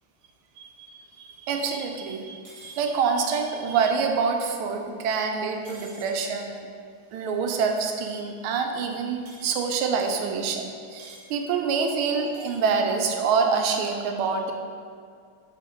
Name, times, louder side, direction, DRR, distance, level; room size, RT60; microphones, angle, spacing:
voice 1, 0.6-6.7 7.1-14.5, right 5 dB, 80° right, 4 dB, 1.5 m, -26 dB
sound 1, 2.4-2.8 5.6-6.1 9.3-9.7 11.0-11.3 12.3-12.6, right 2 dB, 60° right, 1.3 m, -48 dB
5.6 x 4.7 x 3.7 m, 2.2 s
omnidirectional pair, 2.3 m